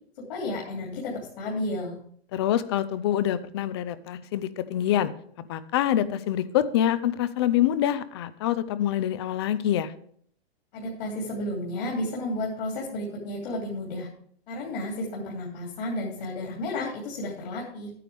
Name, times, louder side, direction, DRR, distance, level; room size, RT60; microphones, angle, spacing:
voice 1, 0.2-2.0 10.7-14.1 14.5-17.9, left 1 dB, 55° left, -2 dB, 2.9 m, -32 dB
voice 2, 2.3-5.1 5.5-9.9, left 11 dB, 25° left, 15 dB, 0.4 m, -25 dB
11.0 x 9.3 x 3.4 m, 0.62 s
hypercardioid pair, 155°, 32 cm